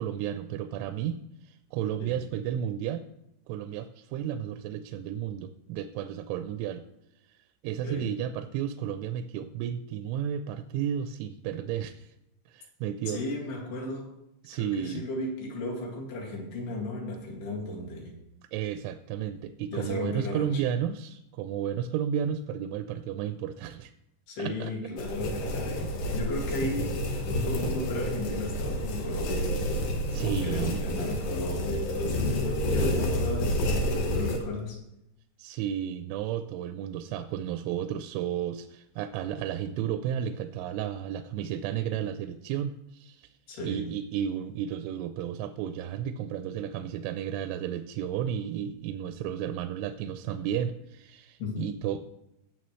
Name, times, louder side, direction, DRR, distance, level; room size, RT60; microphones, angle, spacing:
voice 1, 0.0-3.1 3.5-6.8 7.6-12.1 12.5-13.2 14.4-15.1 18.5-23.9 24.4-24.7 25.8-25.9 26.6-26.9 30.1-30.8 35.4-43.3 43.6-52.0, right 9 dB, 85° right, 9 dB, 2.9 m, -33 dB
voice 2, 13.1-14.1 14.5-18.1 19.7-20.6 24.3-27.0 27.4-29.5 30.2-34.8 43.5-43.8 51.4-51.6, left 2 dB, 60° left, -3 dB, 3.8 m, -35 dB
sound 1, 25.0-34.4, equal, 85° left, 1.7 m, -29 dB
18.0 x 6.7 x 3.1 m, 0.84 s
omnidirectional pair, 5.7 m